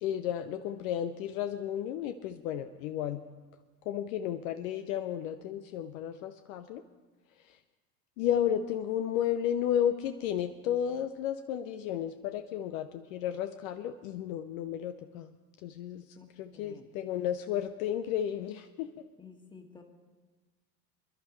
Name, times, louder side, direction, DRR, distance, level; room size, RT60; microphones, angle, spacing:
voice 1, 0.0-3.2 3.9-6.8 7.5-7.6 8.2-15.3 15.6-16.0 16.4-18.9, left 10 dB, 55° left, 8 dB, 0.7 m, -33 dB
voice 2, 16.5-16.9 19.2-19.8, left 5 dB, 10° left, 3 dB, 1.7 m, -52 dB
26.0 x 11.0 x 3.2 m, 1.3 s
figure-of-eight pair, 80°, 50 cm